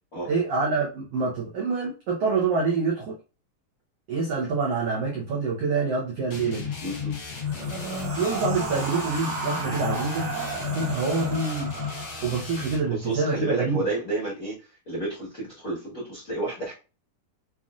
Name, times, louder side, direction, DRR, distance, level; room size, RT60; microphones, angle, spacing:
voice 1, 0.2-3.2 4.1-6.7 8.2-10.3 10.7-11.7 12.2-13.8, right 4 dB, 80° right, -3 dB, 1.4 m, -26 dB
sound 1, 6.3-12.9, left 7 dB, 80° left, 1.1 m, -34 dB
voice 2, 6.8-7.2 12.8-16.7, right 2 dB, 45° left, -7 dB, 1.1 m, -31 dB
sound 2, 7.3-12.6, right 4 dB, 60° right, 1.7 m, -34 dB
5.6 x 2.6 x 2.4 m, 0.32 s
omnidirectional pair, 3.9 m